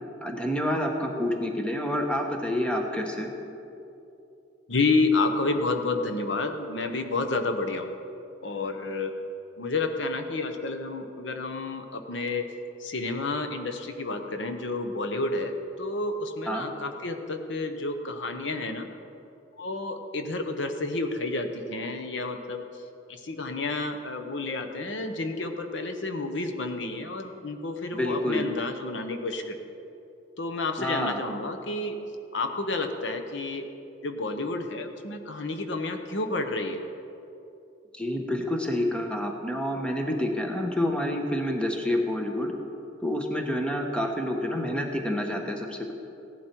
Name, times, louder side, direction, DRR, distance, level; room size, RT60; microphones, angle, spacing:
voice 1, 0.2-3.3 16.5-16.7 27.9-28.5 30.8-31.2 38.0-42.5 43.0-45.9, left 1 dB, 5° left, 2 dB, 1.1 m, -28 dB
voice 2, 4.7-7.9 8.4-9.2 9.6-12.5 12.8-18.9 19.6-22.7 23.1-29.6 30.4-32.0 32.3-33.7 34.0-36.8 44.1-44.2, left 3 dB, 75° left, 6 dB, 0.9 m, -30 dB
16.5 x 11.0 x 4.5 m, 2.8 s
head